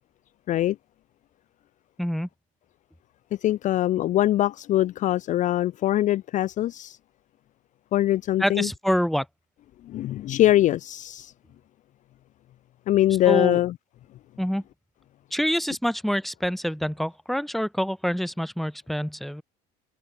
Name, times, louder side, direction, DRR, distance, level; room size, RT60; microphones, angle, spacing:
voice 1, 2.0-2.3 8.4-9.3 13.3-13.6 14.4-14.6 15.3-19.4, equal, ahead, 3.3 m, -26 dB
voice 2, 3.4-7.0 7.9-8.7 9.8-11.3 12.9-13.7, left 14 dB, 45° left, 0.4 m, -22 dB
cardioid pair, 120°, 18 cm